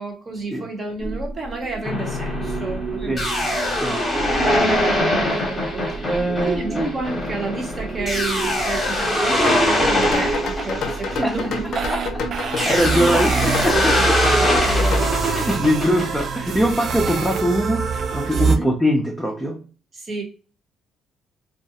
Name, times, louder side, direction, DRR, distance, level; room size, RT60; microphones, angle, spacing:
voice 1, 0.0-3.9 4.2-4.3 5.4-6.1 6.4-11.7 12.5-15.4 18.4-18.7 19.9-20.2, right 3 dB, 35° right, 2 dB, 0.8 m, -30 dB
sound 1, 1.0-18.6, right 4 dB, 55° right, 0.4 m, -27 dB
sound 2, 1.8-12.0 12.6-16.3, left 1 dB, 20° left, 0.9 m, -23 dB
voice 2, 3.7-4.4 6.1-6.9 11.2-11.3 11.9-13.3 13.8-14.4 15.3-17.8 18.1-19.6, equal, ahead, -1 dB, 0.5 m, -22 dB
sound 3, 9.1-15.1, left 5 dB, 65° left, 0.5 m, -30 dB
2.3 x 2.1 x 2.8 m, 0.37 s
cardioid pair, 100°, 0 cm